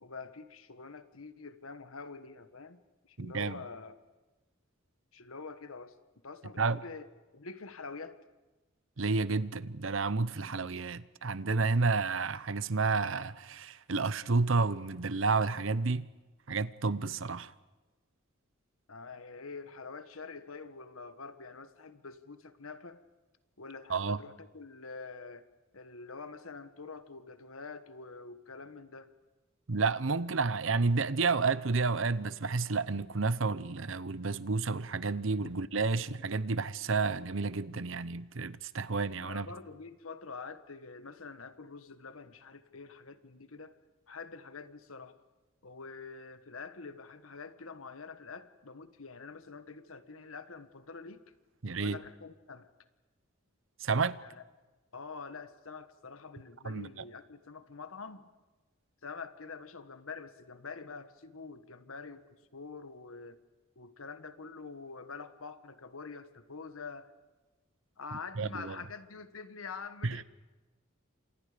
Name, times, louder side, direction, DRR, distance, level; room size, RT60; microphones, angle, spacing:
voice 1, 0.0-4.0 5.1-5.9 6.2-7.1 7.3-8.2 18.9-23.0 23.6-25.4 25.7-29.1 39.2-43.7 44.1-45.2 45.6-51.2 51.8-52.7 54.2-54.4 54.9-58.3 59.0-63.4 63.7-67.1 68.0-70.2, left 4 dB, 85° left, 1.5 m, -46 dB
voice 2, 3.2-3.6 6.6-6.8 9.0-16.0 16.5-17.5 23.9-24.2 29.7-39.5 51.6-52.0 53.8-54.2 56.6-56.9 68.4-68.8 70.0-70.2, right 4 dB, 70° right, 0.9 m, -30 dB
30.0 x 27.0 x 5.2 m
head